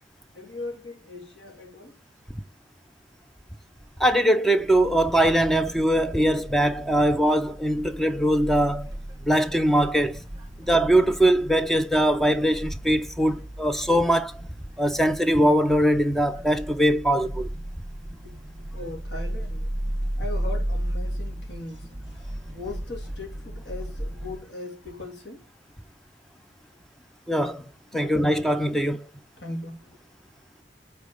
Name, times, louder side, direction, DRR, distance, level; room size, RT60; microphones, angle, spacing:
voice 1, 0.3-2.0 13.3-13.4 18.0-19.8 20.2-25.4 27.9-28.2 29.4-30.0, left 2 dB, 85° left, 2.4 m, -39 dB
voice 2, 4.0-8.9 9.2-10.2 10.6-14.4 14.8-17.5 27.3-27.6 27.9-29.0, right 1 dB, ahead, 0.4 m, -21 dB
sound 1, 4.6-24.4, right 1 dB, 25° right, 1.1 m, -35 dB
5.0 x 4.3 x 5.1 m
head